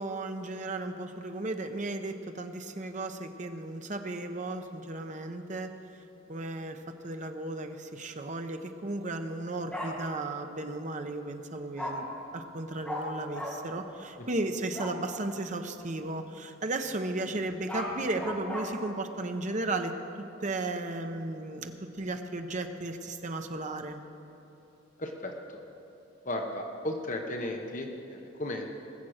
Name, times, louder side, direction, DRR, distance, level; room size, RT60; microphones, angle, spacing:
voice 1, 0.0-5.7 6.3-12.1 12.3-24.0, right 2 dB, 40° right, 6 dB, 0.8 m, -35 dB
Bark, 9.7-9.9 11.8-11.9 12.8-13.0 13.3-13.5 14.7-14.9 17.4-18.6, left 1 dB, 5° left, 2.3 m, -35 dB
voice 2, 25.0-25.6 26.2-28.7, left 1 dB, 40° left, 3 dB, 0.9 m, -35 dB
19.5 x 7.4 x 6.5 m, 3.0 s
head